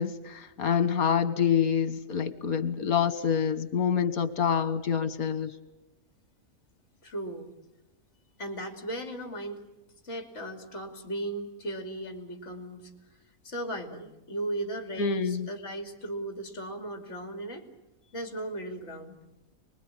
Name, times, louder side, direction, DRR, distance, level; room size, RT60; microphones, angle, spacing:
voice 1, 0.0-5.5 15.0-15.5, left 7 dB, 85° left, 14 dB, 1.8 m, -27 dB
voice 2, 7.0-7.5 8.4-9.6 10.0-12.9 13.4-17.7 18.1-19.2, right 1 dB, 55° left, 5 dB, 3.2 m, -36 dB
29.0 x 20.5 x 10.0 m, 1.0 s
omnidirectional pair, 1.5 m